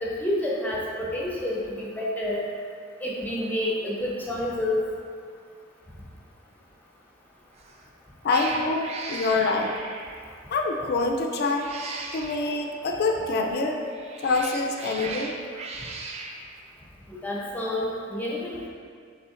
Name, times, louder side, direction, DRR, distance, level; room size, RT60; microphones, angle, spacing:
voice 1, 0.0-2.4 3.0-4.8 17.1-18.7, left 1 dB, 10° left, -5 dB, 0.6 m, -29 dB
Cat, 7.5-7.8 8.2-10.3 11.4-12.5 13.8-16.4, right 3 dB, 35° right, 0.3 m, -37 dB
voice 2, 8.2-9.8 10.5-11.7 12.1-13.8 14.2-15.4, left 3 dB, 55° left, 2 dB, 0.4 m, -25 dB
5.6 x 3.4 x 2.5 m, 2.1 s
head